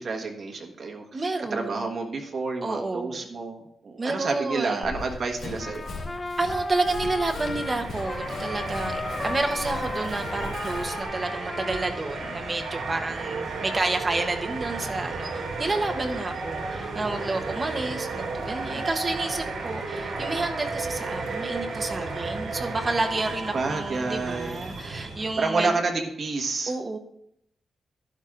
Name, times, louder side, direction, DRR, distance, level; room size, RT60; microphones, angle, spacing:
voice 1, 0.0-5.9 13.2-13.3 18.5-18.9 23.5-24.6 25.4-26.7, right 3 dB, 45° right, 2 dB, 1.3 m, -29 dB
voice 2, 1.1-1.9 2.6-3.3 4.0-4.9 6.4-15.3 15.6-25.7 26.7-27.0, right 2 dB, 25° right, 5 dB, 0.8 m, -30 dB
Run, 4.8-11.0, left 2 dB, 90° left, 2.6 m, -39 dB
Trumpet, 5.6-12.9, left 2 dB, 20° left, 0.5 m, -35 dB
sound 1, 7.1-25.5, right 3 dB, 75° right, 3.0 m, -33 dB
11.5 x 11.0 x 2.5 m, 0.75 s
wide cardioid pair, 155°, 0 cm